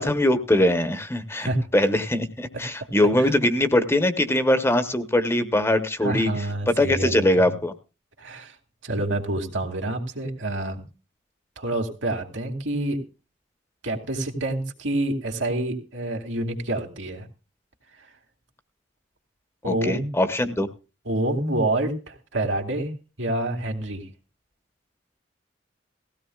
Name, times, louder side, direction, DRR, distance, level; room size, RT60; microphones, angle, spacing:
voice 1, 0.0-7.7 19.6-20.7, left 1 dB, 15° left, 10 dB, 1.0 m, -22 dB
voice 2, 6.0-7.5 8.2-8.5 8.8-10.8 11.6-13.0 13.8-17.2 19.6-20.1 21.1-22.9 23.2-24.0, right 1 dB, 85° right, 2 dB, 2.6 m, -27 dB
18.0 x 15.5 x 2.4 m, 0.32 s
head